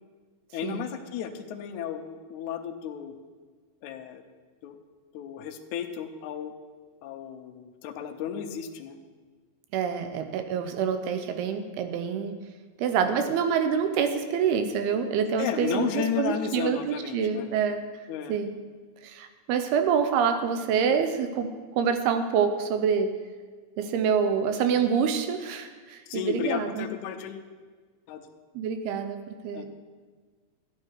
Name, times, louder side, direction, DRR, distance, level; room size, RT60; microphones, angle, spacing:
voice 1, 0.5-3.1 3.8-4.2 4.6-4.8 5.1-6.5 7.0-9.0 15.4-17.5 18.1-18.4 26.1-27.5 28.1-28.3 29.5-29.7, left 9 dB, 80° left, 4 dB, 1.8 m, -33 dB
voice 2, 9.7-12.4 12.8-17.8 18.3-18.5 19.0-21.5 21.7-23.1 23.8-26.9 28.6-29.7, right 7 dB, 85° right, 8 dB, 2.8 m, -26 dB
13.0 x 9.7 x 4.7 m, 1.5 s
omnidirectional pair, 4.4 m